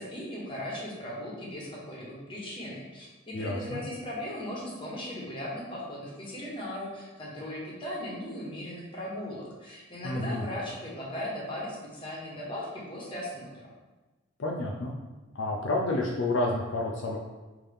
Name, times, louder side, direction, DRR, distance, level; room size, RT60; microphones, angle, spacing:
voice 1, 0.0-13.7, left 1 dB, 25° left, -4 dB, 1.1 m, -38 dB
voice 2, 3.3-3.8 10.0-10.4 14.4-14.9 15.3-17.2, left 2 dB, 65° left, -1 dB, 0.5 m, -30 dB
5.4 x 2.9 x 3.4 m, 1.2 s
head